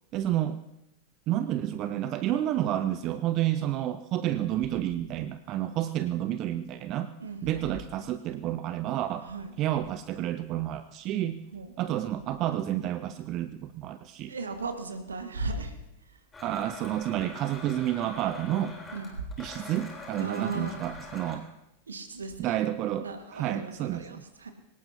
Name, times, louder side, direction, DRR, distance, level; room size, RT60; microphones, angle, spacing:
voice 1, 0.1-0.6 1.3-7.1 7.4-9.3 9.6-11.4 11.8-14.3 16.4-18.8 19.4-21.5 22.4-24.1, right 12 dB, 35° right, 13 dB, 0.5 m, -30 dB
voice 2, 7.2-7.6 9.2-9.5 11.5-11.7 14.3-15.8 16.1-16.2 18.9-19.2 20.2-20.8 21.9-22.6 23.0-24.5, right 3 dB, 70° right, 6 dB, 1.6 m, -37 dB
Domestic sounds home sounds, 16.3-21.4, left 3 dB, 15° left, 3.8 m, -44 dB
23.5 x 18.0 x 2.8 m, 0.86 s
figure-of-eight pair, 90°, 0 cm